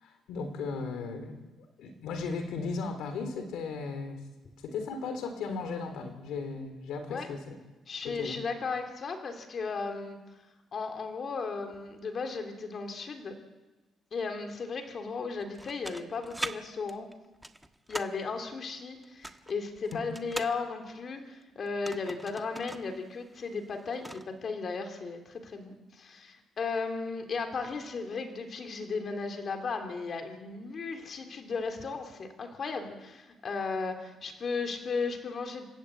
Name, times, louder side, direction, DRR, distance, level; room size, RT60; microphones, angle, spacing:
voice 1, 0.0-1.3 1.8-4.2 4.6-7.6 8.0-8.4, left 4 dB, 85° left, 7 dB, 3.2 m, -36 dB
voice 2, 7.9-10.2 10.7-13.3 14.1-17.1 17.9-35.6, left 4 dB, 50° left, 5 dB, 3.5 m, -35 dB
sound 1, 15.4-16.5 16.9-18.2 19.0-20.6 21.7-22.9 23.2-23.3 23.6-24.3, right 1 dB, 5° right, 1.4 m, -40 dB
29.5 x 12.5 x 8.7 m, 1.1 s
cardioid pair, 90°, 0 cm